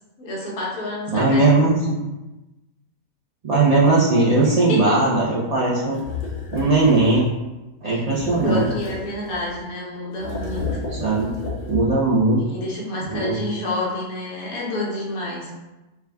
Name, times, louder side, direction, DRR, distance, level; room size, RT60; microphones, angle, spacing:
voice 1, 0.2-1.5 4.7-5.0 7.8-8.0 8.4-10.7 12.4-15.5, left 2 dB, 65° left, -4 dB, 1.4 m, -28 dB
voice 2, 1.1-2.0 3.4-6.0 6.5-7.3 7.8-8.6 11.0-11.3 11.7-12.4 13.1-13.4, right 3 dB, 55° right, -6 dB, 0.4 m, -18 dB
sound 1, 5.9-7.3 8.1-9.6 10.1-12.1, left 4 dB, 40° left, 0.7 m, -32 dB
4.7 x 2.3 x 3.4 m, 1.0 s
omnidirectional pair, 1.7 m